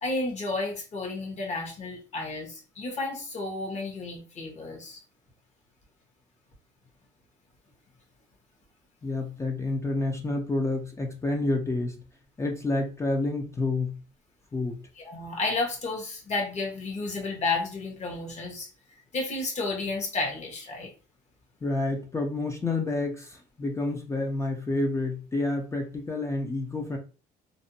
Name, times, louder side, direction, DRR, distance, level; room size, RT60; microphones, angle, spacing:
voice 1, 0.0-5.0 15.0-18.7 19.1-20.9, left 3 dB, 45° left, 0 dB, 1.0 m, -32 dB
voice 2, 9.0-12.0 12.4-13.9 14.5-14.8 21.6-27.0, left 2 dB, 15° left, 2 dB, 0.4 m, -29 dB
2.6 x 2.1 x 2.6 m, 0.35 s
cardioid pair, 110°, 17 cm